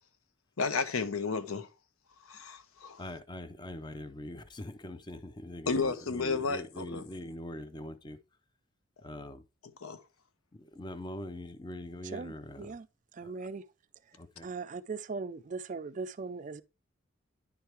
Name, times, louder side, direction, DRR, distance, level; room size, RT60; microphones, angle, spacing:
voice 1, 0.6-1.7 2.3-3.0 5.7-7.0 9.8-10.0, left 4 dB, 90° left, 0.7 m, -32 dB
voice 2, 3.0-8.2 9.0-9.4 10.5-12.8 13.2-13.3 14.1-14.5, left 1 dB, 20° left, 0.5 m, -43 dB
voice 3, 12.0-12.9 13.1-13.6 14.4-16.6, right 4 dB, 35° right, 0.3 m, -39 dB
10.0 x 4.6 x 3.3 m
head